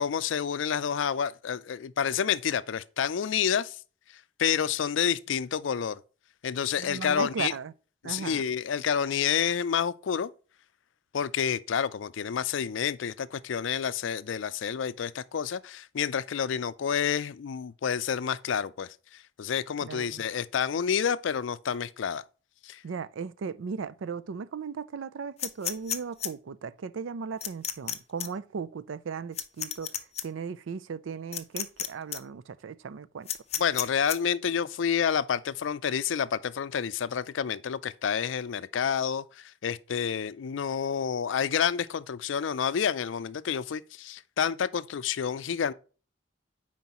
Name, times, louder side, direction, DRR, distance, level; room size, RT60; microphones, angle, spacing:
voice 1, 0.0-3.8 4.4-6.0 6.4-7.5 8.0-10.3 11.1-22.2 22.6-22.8 33.6-45.7, left 7 dB, 80° left, 0.4 m, -29 dB
voice 2, 6.8-7.7 8.0-8.4 19.8-20.2 22.8-29.9 30.2-33.3, right 5 dB, 85° right, 0.4 m, -37 dB
sound 1, 25.4-26.3 27.4-27.9 28.2-28.3 29.3-30.2 31.3-31.9 32.1-32.2 33.3-34.2, left 10 dB, 35° left, 0.6 m, -31 dB
9.3 x 4.5 x 2.9 m
head